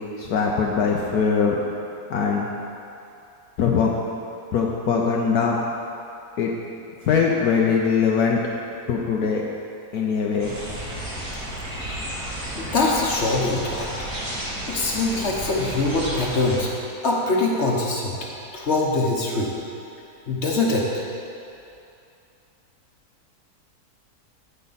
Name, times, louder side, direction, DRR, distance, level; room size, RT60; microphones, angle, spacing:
voice 1, 0.0-1.5 2.1-2.5 3.6-3.9 4.5-5.6 6.4-6.5 7.1-8.4 8.9-9.4 9.9-10.5, left 6 dB, 70° left, -1 dB, 1.2 m, -21 dB
sound 1, 10.4-16.6, right 1 dB, 65° right, 2.3 m, -32 dB
voice 2, 12.5-13.9 14.7-16.7 17.0-18.1 18.5-19.5 20.3-21.0, left 2 dB, 45° left, -2 dB, 1.3 m, -23 dB
15.0 x 5.4 x 4.1 m, 2.7 s
omnidirectional pair, 1.7 m